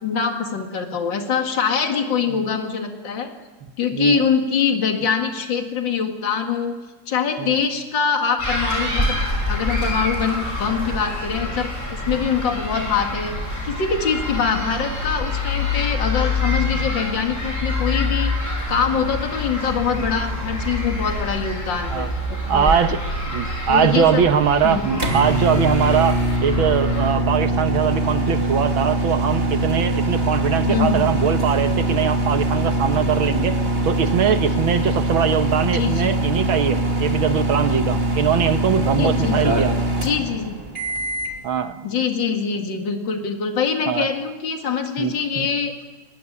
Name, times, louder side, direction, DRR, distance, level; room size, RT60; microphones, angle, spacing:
voice 1, 0.0-3.3 3.8-6.7 7.1-9.2 9.5-13.3 13.6-18.3 18.7-22.1 22.5-22.9 23.7-24.3 24.6-25.0 30.7-31.2 35.6-36.2 38.9-39.6 40.0-40.6 41.8-45.7, left 6 dB, 65° left, 4 dB, 2.8 m, -24 dB
voice 2, 3.9-4.3 7.4-7.6 16.8-16.9 20.0-20.1 21.9-22.1 22.5-23.0 23.3-33.6 33.8-39.8 41.4-41.9 43.9-44.1 45.0-45.5, right 8 dB, 80° right, 9 dB, 2.1 m, -21 dB
sound 1, 8.4-27.1, left 2 dB, 20° left, 7.2 m, -26 dB
sound 2, 24.4-41.4, right 1 dB, 30° right, 2.9 m, -22 dB
22.0 x 21.0 x 9.9 m, 1.2 s
omnidirectional pair, 2.2 m